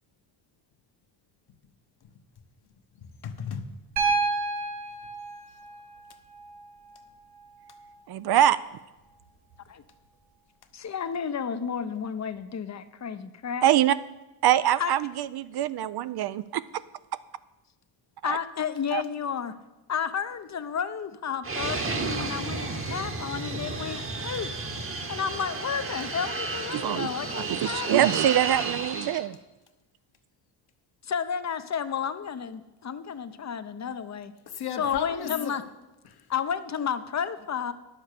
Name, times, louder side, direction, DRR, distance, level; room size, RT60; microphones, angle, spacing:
voice 1, 3.0-3.8 4.1-4.2 34.5-35.5 36.0-36.2, left 7 dB, 55° left, 7 dB, 1.1 m, -35 dB
Piano, 4.0-8.0 9.5-9.6, right 4 dB, 70° right, 2.9 m, -31 dB
voice 2, 8.1-8.6 13.6-14.0 14.4-16.6 18.2-18.4 18.9-19.0 26.7-27.1 27.4-29.4, right 12 dB, 55° right, 15 dB, 0.5 m, -24 dB
voice 3, 10.7-13.7 14.8-14.9 18.2-19.5 19.9-24.5 25.1-28.0 31.0-34.3 34.8-35.6 36.3-37.7, left 7 dB, 35° left, 11 dB, 0.7 m, -32 dB
Fixed-wing aircraft airplane, 21.4-29.3, right 3 dB, 30° right, 1.1 m, -32 dB
9.9 x 7.4 x 6.6 m, 1.1 s
cardioid pair, 85°, 47 cm